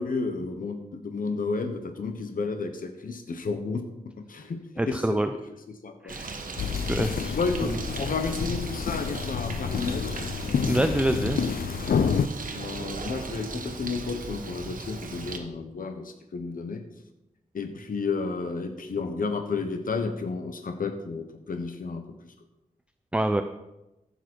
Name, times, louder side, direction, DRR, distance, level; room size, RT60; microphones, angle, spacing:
voice 1, 0.0-3.8 4.2-4.6 4.9-5.2 5.8-6.2 7.3-10.1 10.4-11.5 12.5-16.8 17.5-22.3, left 4 dB, 70° left, 6 dB, 1.0 m, -32 dB
voice 2, 4.8-5.3 6.0-6.4 6.9-7.4 7.7-7.8 10.7-11.4 23.1-23.4, right 1 dB, 10° right, 8 dB, 0.5 m, -26 dB
Bird, 6.1-15.4, right 3 dB, 65° right, 1.3 m, -37 dB
sound 1, 6.6-12.3, left 7 dB, 90° left, 0.5 m, -29 dB
14.5 x 7.1 x 4.6 m, 0.96 s
wide cardioid pair, 110°, 15 cm